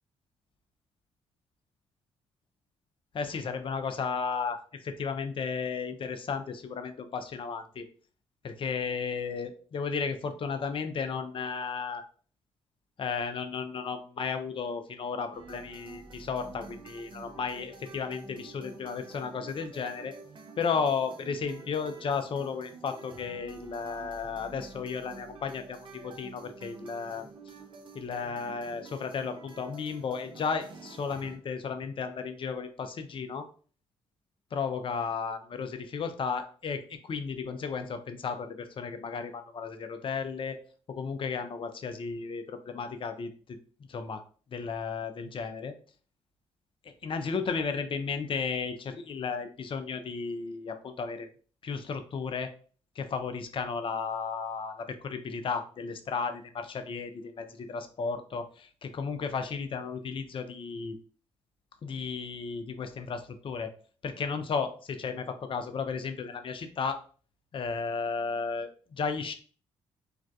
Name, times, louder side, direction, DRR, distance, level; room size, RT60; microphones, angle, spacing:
voice 1, 3.1-7.8 8.4-12.0 13.0-20.1 20.6-27.3 27.9-33.5 34.5-40.6 40.9-43.6 43.9-44.2 44.5-45.7 47.0-51.3 51.6-52.5 53.0-61.0 61.8-63.7 64.0-67.0 67.5-69.3, left 5 dB, 45° left, 8 dB, 0.4 m, -34 dB
sound 1, 15.3-31.4, right 4 dB, 40° right, 0.5 m, -49 dB
2.4 x 2.1 x 2.6 m, 0.42 s
hypercardioid pair, 50°, 13 cm